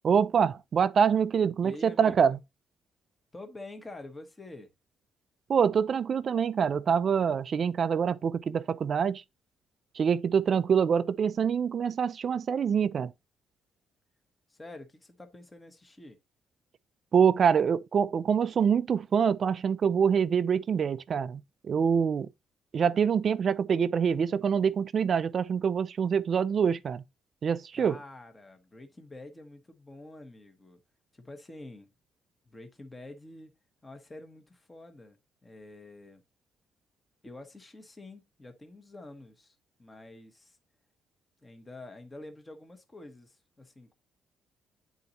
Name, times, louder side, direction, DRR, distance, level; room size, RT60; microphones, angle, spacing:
voice 1, 0.0-2.4 5.5-9.2 9.9-13.1 17.1-22.3 22.7-27.0 27.4-28.0, right 7 dB, 40° right, 0.5 m, -25 dB
voice 2, 1.6-2.4 3.3-4.7 14.5-16.2 27.7-30.8 31.2-31.9 32.5-33.5 33.8-36.2 37.2-40.6 41.4-43.9, left 2 dB, 15° left, 1.2 m, -47 dB
10.5 x 4.0 x 2.7 m
cardioid pair, 155°, 0 cm